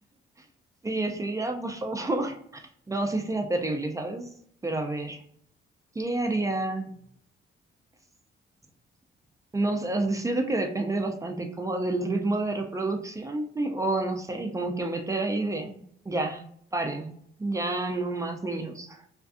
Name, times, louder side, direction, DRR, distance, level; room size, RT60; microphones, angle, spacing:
voice 1, 0.8-2.6 2.9-4.3 4.6-5.2 6.0-6.9 9.5-16.4 16.7-17.1 17.4-19.0, right 2 dB, 15° right, 3 dB, 0.3 m, -29 dB
2.5 x 2.3 x 2.4 m, 0.66 s
cardioid pair, 90°, 20 cm